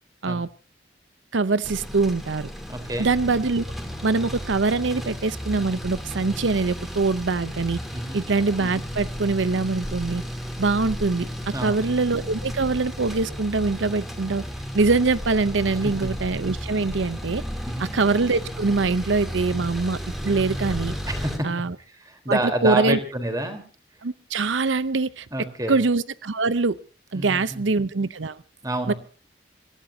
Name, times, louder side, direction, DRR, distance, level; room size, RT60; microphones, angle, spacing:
voice 1, 1.3-2.5 3.0-3.6 4.0-7.8 8.1-10.2 10.6-14.4 14.7-17.4 17.8-20.0 20.2-20.9 21.4-21.7 22.3-23.0 24.0-25.3 25.7-26.8 27.1-28.4 28.9-29.0, right 3 dB, 90° right, 16 dB, 0.7 m, -23 dB
sound 1, 1.6-21.4, equal, ahead, 2.9 m, -33 dB
voice 2, 2.7-3.1 7.9-8.2 11.5-11.8 15.8-16.1 17.7-17.9 21.1-21.5 21.9-23.6 25.3-25.8 27.1-27.6 28.6-28.9, right 1 dB, 20° right, 7 dB, 3.9 m, -28 dB
26.5 x 16.0 x 2.8 m, 0.40 s
head